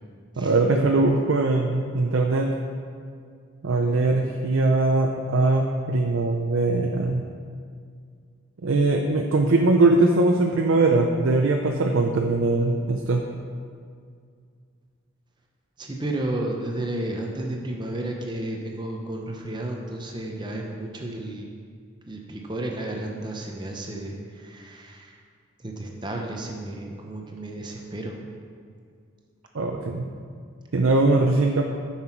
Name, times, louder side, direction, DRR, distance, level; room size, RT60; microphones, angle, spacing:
voice 1, 0.4-2.5 3.6-7.3 8.6-13.3 29.5-30.1 30.7-31.6, right 2 dB, 70° right, 2 dB, 0.5 m, -21 dB
voice 2, 15.8-21.5 22.1-25.2 25.6-28.2, right 1 dB, 20° right, 1 dB, 0.7 m, -32 dB
9.6 x 5.8 x 4.5 m, 2.2 s
head